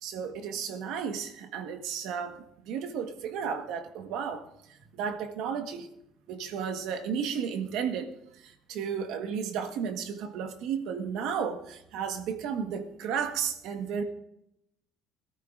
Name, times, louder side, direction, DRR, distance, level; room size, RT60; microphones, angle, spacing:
voice 1, 0.0-4.5 5.0-5.9 6.3-8.1 8.4-14.0, right 7 dB, 75° right, 1.4 m, -33 dB
21.5 x 13.5 x 2.5 m
cardioid pair, 140°, 0 cm